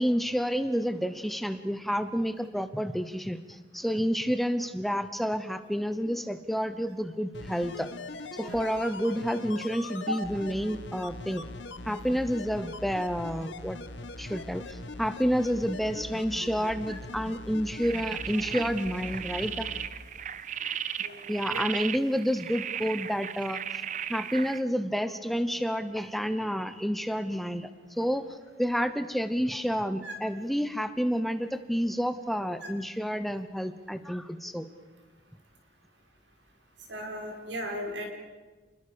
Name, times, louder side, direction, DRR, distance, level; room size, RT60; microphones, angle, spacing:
voice 1, 0.0-7.9 8.3-11.5 11.9-13.8 14.2-19.7 21.3-23.6 24.1-34.7, equal, ahead, 11 dB, 0.9 m, -29 dB
sound 1, 7.3-19.9 20.2-20.3, left 2 dB, 90° left, 1.6 m, -41 dB
sound 2, 17.8-24.6, right 9 dB, 40° right, 0.8 m, -36 dB
voice 2, 21.0-21.7 30.0-30.1 36.9-38.0, equal, 90° right, 2 dB, 6.4 m, -36 dB
29.5 x 21.0 x 6.9 m, 1.3 s
head